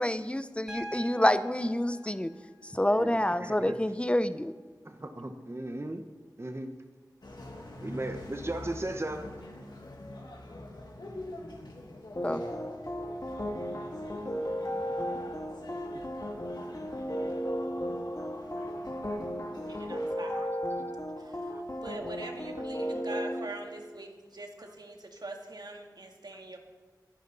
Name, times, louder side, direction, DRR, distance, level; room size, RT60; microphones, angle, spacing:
voice 1, 0.0-2.3 2.7-4.5 12.2-12.4, left 1 dB, 15° left, 12 dB, 0.8 m, -27 dB
Piano, 0.7-4.7 6.2-6.3, right 1 dB, 10° right, 2.4 m, -47 dB
voice 2, 2.9-3.8 4.8-6.0 6.4-6.8 7.8-9.3 18.2-18.3 19.7-19.9 20.3-20.5 21.5-21.6 24.6-24.7, right 1 dB, 35° right, 6 dB, 1.1 m, -37 dB
sound 1, 7.2-20.1, left 1 dB, 75° left, 2.6 m, -46 dB
sound 2, 12.2-23.5, equal, 45° left, 2.5 m, -35 dB
voice 3, 19.7-20.5 21.2-26.6, right 2 dB, 70° right, 3 dB, 2.0 m, -43 dB
21.0 x 11.0 x 4.1 m, 1.4 s
wide cardioid pair, 45°, 7 cm